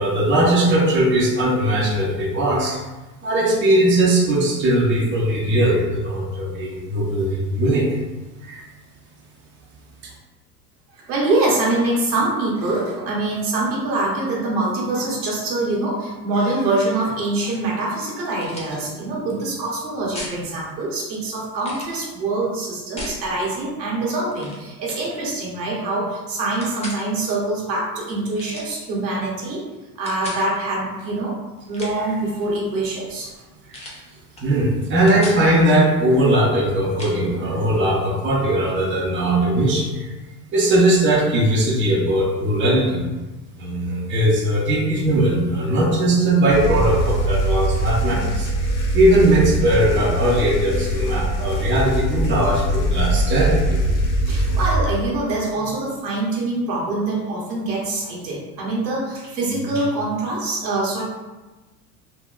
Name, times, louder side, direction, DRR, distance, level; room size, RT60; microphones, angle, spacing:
voice 1, 0.0-2.8 3.2-7.9 8.4-8.6 34.4-40.1 40.5-43.0 43.6-48.5 48.9-53.8, right 1 dB, 25° right, -3 dB, 0.7 m, -19 dB
voice 2, 11.0-29.6 30.0-31.3 31.7-33.3 54.2-61.0, right 2 dB, 85° right, -4 dB, 1.1 m, -24 dB
sound 1, 18.4-18.8 20.1-20.4 21.6-22.0 23.0-23.2 24.3-24.6 24.9-25.1 26.6-27.0 28.4-28.8 30.1-30.4 31.6-32.1 33.7-34.0 34.4-34.5 34.8-35.4 37.0-37.2, left 1 dB, 15° left, 0.6 m, -35 dB
sound 2, 46.5-54.8, right 1 dB, 80° left, 0.7 m, -22 dB
3.4 x 2.1 x 2.4 m, 1.1 s
hypercardioid pair, 85°, 50 cm